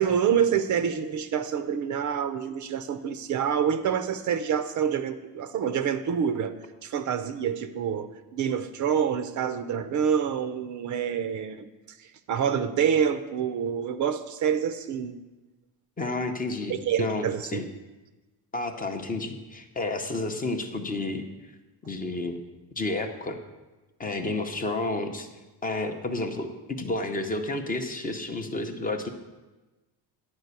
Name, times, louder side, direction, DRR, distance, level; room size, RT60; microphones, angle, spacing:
voice 1, 0.0-6.5 6.8-11.7 12.0-15.2 16.7-17.6, right 8 dB, 45° right, 11 dB, 0.5 m, -27 dB
voice 2, 16.0-17.7 18.5-21.2 21.8-22.4 22.8-23.4 24.0-25.3 25.6-29.1, left 2 dB, 20° left, 5 dB, 0.6 m, -31 dB
10.5 x 4.9 x 8.1 m, 1.1 s
cardioid pair, 160°, 42 cm